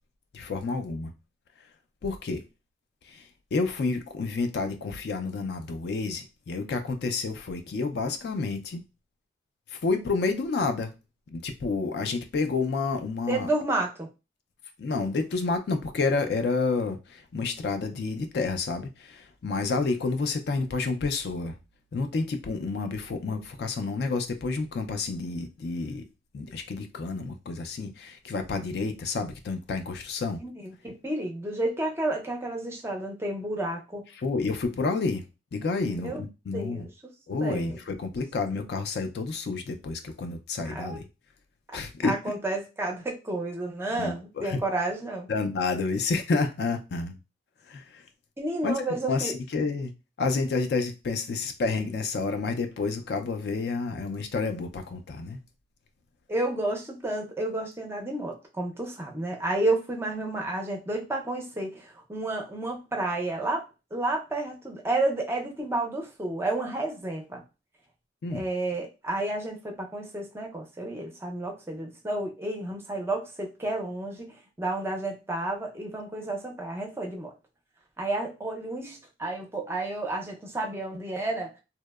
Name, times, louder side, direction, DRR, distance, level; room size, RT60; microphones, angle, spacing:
voice 1, 0.3-1.1 2.0-2.4 3.1-3.2 3.5-8.8 9.7-10.9 11.3-13.5 14.8-21.6 21.9-26.0 26.3-30.4 34.2-35.2 35.5-36.9 37.3-41.0 41.7-42.1 43.9-44.1 44.4-44.6 45.3-47.2 47.7-48.0 48.6-49.9 50.2-55.4 68.2-68.4, left 4 dB, 55° left, 0.3 m, -29 dB
voice 2, 13.3-14.1 30.4-34.0 35.8-36.2 36.5-36.9 37.4-37.8 40.6-41.0 42.0-45.3 48.4-49.3 56.3-63.6 63.9-67.4 68.3-77.3 78.0-81.5, right 2 dB, 15° right, 0.4 m, -31 dB
2.7 x 2.0 x 2.2 m
head